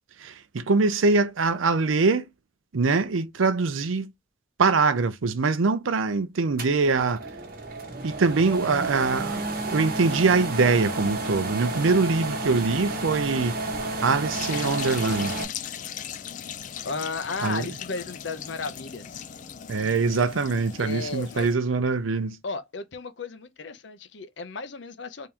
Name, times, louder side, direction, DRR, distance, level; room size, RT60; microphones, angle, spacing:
voice 1, 0.2-2.3 2.7-4.1 4.6-7.2 8.0-13.6 14.0-15.3 17.4-17.7 19.7-22.4, right 4 dB, 90° right, 0.6 m, -23 dB
sound 1, 6.6-15.4, right 2 dB, 50° right, 1.0 m, -31 dB
sound 2, 14.3-21.6, left 9 dB, 40° left, 0.4 m, -38 dB
voice 2, 16.8-19.3 20.8-21.5 22.4-25.3, left 3 dB, 65° left, 0.7 m, -34 dB
3.7 x 2.9 x 3.3 m
head